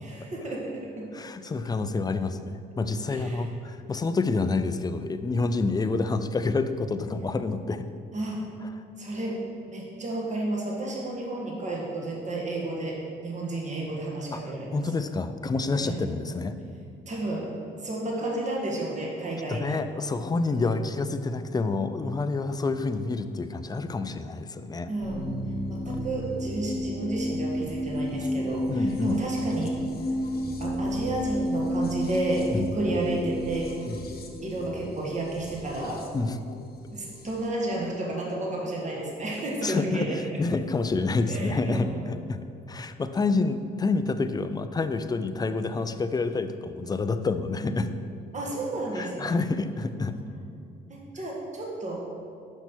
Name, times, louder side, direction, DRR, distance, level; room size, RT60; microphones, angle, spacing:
voice 1, 0.0-1.1 3.1-3.5 8.1-8.4 9.0-13.0 13.2-14.8 15.8-16.0 17.1-17.5 17.8-19.8 20.6-20.7 24.9-25.3 25.7-29.8 30.6-33.7 34.4-36.0 36.9-40.2 41.3-42.0 48.3-49.4 50.1-50.2 50.9-52.0, right 2 dB, 35° right, -2 dB, 1.6 m, -31 dB
voice 2, 1.1-7.9 14.3-14.4 14.7-16.5 19.5-24.9 25.9-26.0 28.7-29.2 32.5-32.7 33.9-34.0 36.1-36.4 39.6-48.0 48.9-50.1, left 3 dB, 20° left, 10 dB, 0.4 m, -28 dB
sound 1, 25.0-37.5, equal, 50° left, 1.1 m, -32 dB
6.0 x 5.5 x 6.0 m, 2.5 s
cardioid pair, 90°, 20 cm